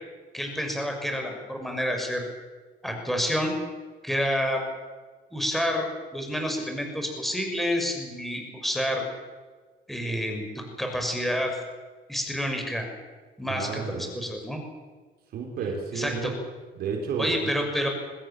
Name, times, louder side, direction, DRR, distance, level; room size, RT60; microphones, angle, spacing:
voice 1, 0.3-2.2 2.8-3.5 4.0-4.6 5.3-9.0 9.9-11.6 12.1-12.9 13.4-14.6 15.9-16.3 17.2-17.9, equal, ahead, 3 dB, 6.5 m, -29 dB
voice 2, 13.5-14.1 15.3-16.3 16.8-17.5, right 5 dB, 65° right, 1 dB, 5.3 m, -31 dB
24.0 x 20.0 x 7.4 m, 1.4 s
cardioid pair, 110°, 17 cm